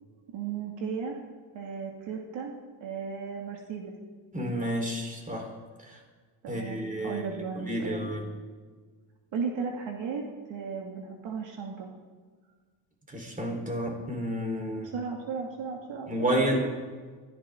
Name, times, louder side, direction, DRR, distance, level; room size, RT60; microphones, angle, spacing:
voice 1, 0.3-1.2 1.5-2.5 2.8-3.9 6.4-8.1 9.3-10.2 10.5-11.9 14.8-16.7, right 5 dB, 65° right, 1 dB, 2.6 m, -35 dB
voice 2, 4.3-5.5 5.9-6.0 6.5-7.2 7.5-8.3 13.1-14.9 16.1-16.7, equal, 15° right, 1 dB, 4.4 m, -30 dB
23.5 x 16.0 x 3.9 m, 1.5 s
cardioid pair, 105°, 49 cm